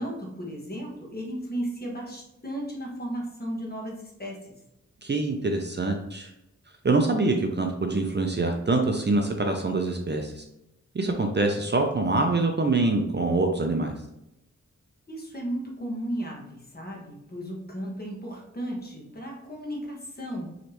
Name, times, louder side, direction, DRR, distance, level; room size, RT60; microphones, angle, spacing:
voice 1, 0.0-4.6 15.1-20.5, equal, 30° left, -2 dB, 1.4 m, -35 dB
voice 2, 5.0-6.3 6.8-10.4 10.9-13.9, right 2 dB, 35° right, 3 dB, 0.5 m, -25 dB
4.9 x 3.2 x 3.0 m, 0.85 s
wide cardioid pair, 100°, 30 cm